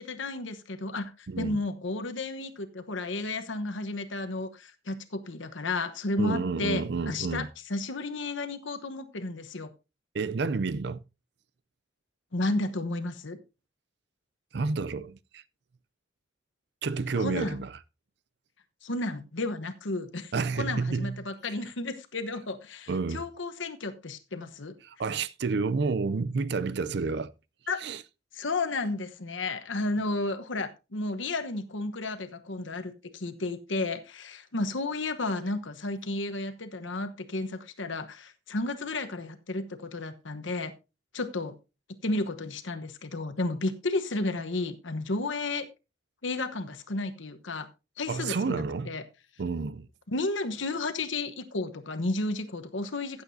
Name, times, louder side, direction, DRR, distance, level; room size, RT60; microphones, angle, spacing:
voice 1, 0.0-9.7 12.3-13.4 17.2-17.6 18.8-24.7 27.7-27.8 28.3-40.7 41.1-41.6 42.0-45.7 46.2-47.7 48.0-49.0 50.1-53.2, left 2 dB, 80° left, 1.1 m, -32 dB
voice 2, 1.3-1.6 6.2-7.5 10.1-11.0 14.5-15.4 16.8-17.7 20.3-21.1 22.9-23.2 24.8-27.3 27.8-28.0 48.1-48.9 49.4-49.9, right 4 dB, 60° right, 0.5 m, -30 dB
15.0 x 8.2 x 2.7 m
head